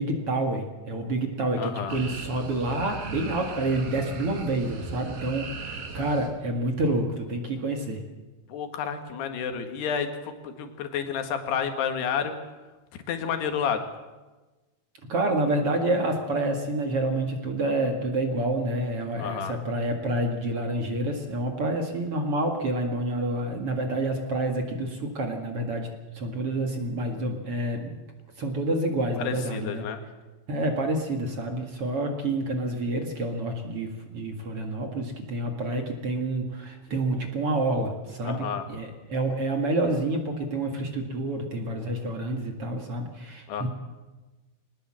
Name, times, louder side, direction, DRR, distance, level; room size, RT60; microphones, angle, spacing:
voice 1, 0.0-8.0 15.1-28.0 28.4-29.9 30.5-43.7, right 2 dB, 45° right, 3 dB, 2.2 m, -28 dB
voice 2, 1.6-2.0 8.5-12.3 12.9-13.8 19.2-19.6 29.2-30.0 38.3-38.7 43.5-43.7, left 7 dB, 80° left, 7 dB, 3.9 m, -30 dB
sound 1, 1.9-6.3, right 4 dB, 65° right, 4.3 m, -38 dB
21.5 x 19.0 x 7.7 m, 1.2 s
omnidirectional pair, 4.6 m